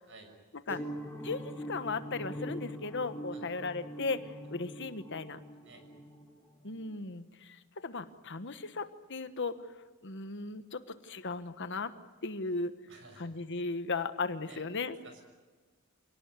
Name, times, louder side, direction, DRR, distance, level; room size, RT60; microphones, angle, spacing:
sound 1, 0.7-6.9, equal, 10° left, 3.4 m, -43 dB
voice 1, 1.2-5.4 6.6-9.6 10.0-11.9 12.2-12.7 13.2-15.0, left 3 dB, 55° left, 11 dB, 1.3 m, -36 dB
voice 2, 12.9-13.3 14.5-14.6 15.0-15.2, right 3 dB, 60° right, 6 dB, 6.4 m, -52 dB
27.5 x 18.5 x 9.6 m, 1.3 s
head